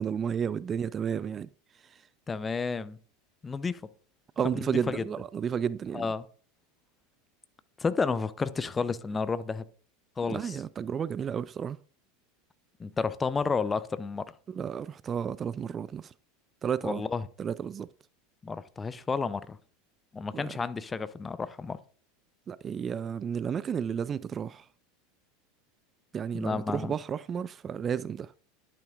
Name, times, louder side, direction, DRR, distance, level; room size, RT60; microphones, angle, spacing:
voice 1, 0.0-1.5 1.8-2.1 4.4-6.1 10.3-11.8 14.5-16.1 16.6-17.0 17.4-17.9 20.3-20.5 22.5-24.7 26.1-28.3, right 7 dB, 30° right, 0.3 m, -32 dB
voice 2, 2.3-3.0 3.4-3.8 4.5-5.0 5.9-6.2 7.8-9.6 10.2-10.6 12.8-14.2 16.8-17.2 18.4-19.6 20.1-21.8 26.3-26.9, left 4 dB, 20° left, 0.6 m, -31 dB
10.5 x 8.9 x 2.4 m
hypercardioid pair, 80°, 0 cm